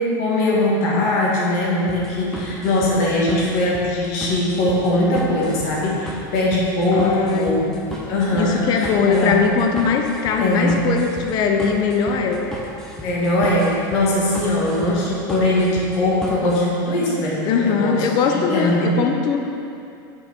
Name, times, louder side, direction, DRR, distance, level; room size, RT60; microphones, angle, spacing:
voice 1, 0.0-7.6 7.9-9.4 10.4-10.8 13.0-19.0, left 1 dB, 60° left, -4 dB, 1.6 m, -21 dB
sound 1, 1.9-16.6, left 1 dB, 5° left, 0.8 m, -35 dB
voice 2, 6.9-7.7 8.3-12.4 17.4-19.5, left 5 dB, 40° left, 3 dB, 0.6 m, -20 dB
6.2 x 4.9 x 4.4 m, 2.6 s
supercardioid pair, 140°, 11 cm